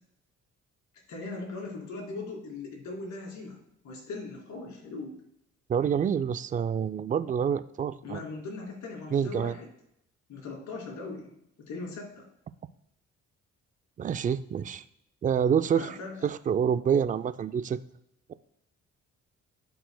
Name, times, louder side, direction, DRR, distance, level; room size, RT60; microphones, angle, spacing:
voice 1, 1.1-3.6 3.8-5.1 8.0-9.7 10.3-11.3 11.6-12.2 15.7-16.3, left 3 dB, 75° left, -1 dB, 2.6 m, -39 dB
voice 2, 5.7-8.2 9.1-9.6 14.0-14.8 15.2-17.8 18.3-18.4, right 7 dB, 25° right, 12 dB, 0.3 m, -27 dB
12.5 x 4.7 x 2.2 m, 0.77 s
cardioid pair, 90°, 30 cm